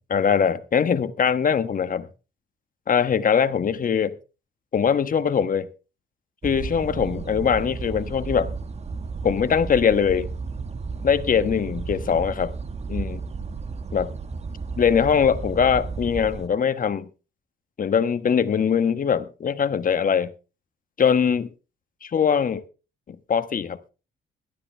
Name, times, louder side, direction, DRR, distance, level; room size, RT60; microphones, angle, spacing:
voice 1, 0.1-2.1 2.9-4.1 4.7-5.7 6.4-8.5 9.2-10.3 11.0-12.5 12.9-13.2 13.9-14.1 14.8-17.1 17.8-20.3 21.0-21.5 22.0-22.6 23.1-23.8, left 7 dB, 45° left, 1.3 m, -22 dB
sound 1, 6.4-16.5, right 4 dB, 30° right, 1.5 m, -33 dB
17.0 x 12.5 x 3.4 m
cardioid pair, 90°, 20 cm